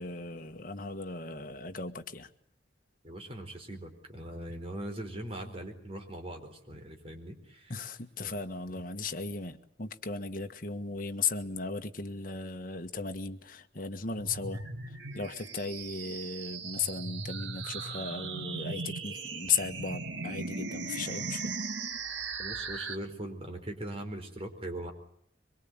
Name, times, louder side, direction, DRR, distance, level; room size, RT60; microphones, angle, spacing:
voice 1, 0.0-2.3 7.7-14.6 14.9-21.6, left 5 dB, 50° left, 7 dB, 1.6 m, -36 dB
voice 2, 3.0-7.7 8.2-8.3 8.7-8.8 22.4-24.9, right 1 dB, 30° right, 4 dB, 4.5 m, -41 dB
sound 1, 14.2-23.0, right 4 dB, 85° right, 1.9 m, -38 dB
24.0 x 22.5 x 8.8 m, 0.67 s
head